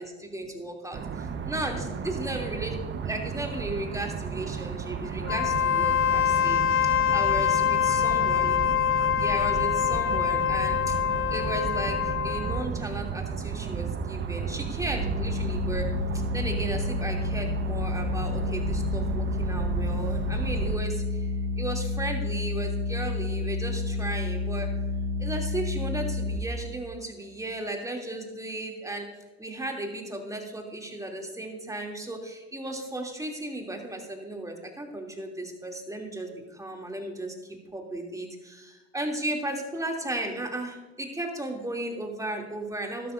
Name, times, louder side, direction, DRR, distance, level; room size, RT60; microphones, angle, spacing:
voice 1, 0.0-2.8 3.0-8.6 9.2-10.9 11.3-15.9 16.3-21.3 21.6-24.7 25.2-29.1 29.4-43.1, right 1 dB, 10° right, 1 dB, 2.8 m, -35 dB
sound 1, 0.9-20.8, right 6 dB, 35° right, 1.2 m, -33 dB
Wind instrument woodwind instrument, 5.2-12.7, left 9 dB, 40° left, 0.8 m, -25 dB
sound 2, 14.9-26.4, left 2 dB, 85° right, 1.7 m, -30 dB
15.0 x 12.5 x 2.6 m, 1.2 s
hypercardioid pair, 65°, 33 cm